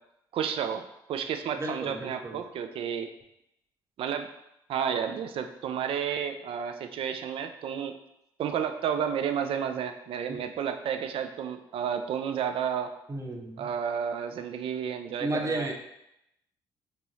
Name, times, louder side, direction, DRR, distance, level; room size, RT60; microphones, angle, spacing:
voice 1, 0.3-3.1 4.0-4.3 4.7-7.9 8.4-12.9 13.6-15.7, right 8 dB, 60° right, 8 dB, 0.4 m, -31 dB
voice 2, 1.6-2.4 10.3-10.4 13.1-13.7 15.2-15.7, right 1 dB, 30° right, 2 dB, 0.8 m, -33 dB
4.5 x 2.9 x 2.7 m, 0.82 s
hypercardioid pair, 45°, 11 cm